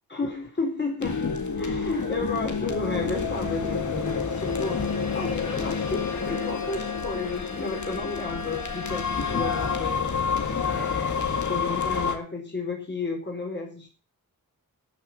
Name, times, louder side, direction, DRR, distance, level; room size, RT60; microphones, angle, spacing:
voice 1, 0.1-10.2 10.8-13.9, left 3 dB, 30° left, 0 dB, 4.2 m, -32 dB
sound 1, 1.0-12.2, left 5 dB, 55° left, 2.0 m, -29 dB
Bowed string instrument, 4.0-10.1, left 4 dB, 75° left, 4.7 m, -39 dB
12.5 x 7.1 x 7.3 m, 0.37 s
wide cardioid pair, 155°, 35 cm